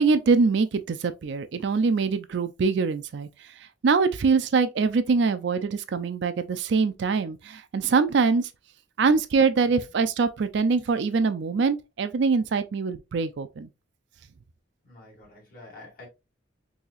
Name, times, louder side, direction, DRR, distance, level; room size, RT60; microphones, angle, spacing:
voice 1, 0.0-3.3 3.8-8.5 9.0-13.7, right 4 dB, 65° right, 0.4 m, -23 dB
voice 2, 14.8-16.1, left 2 dB, 50° left, 2.0 m, -48 dB
4.1 x 2.8 x 2.3 m
head